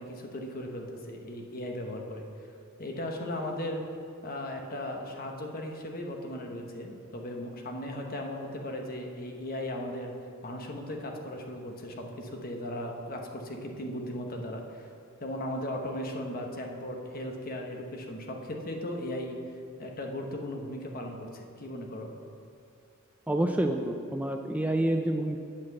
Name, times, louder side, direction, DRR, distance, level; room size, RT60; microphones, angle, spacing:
voice 1, 0.0-2.3 2.8-3.8 4.2-10.1 10.4-14.9 15.2-19.4 19.8-22.1, left 1 dB, 45° left, 2 dB, 1.1 m, -37 dB
voice 2, 23.3-25.4, right 1 dB, 5° right, 4 dB, 0.4 m, -28 dB
8.5 x 5.9 x 7.7 m, 2.5 s
head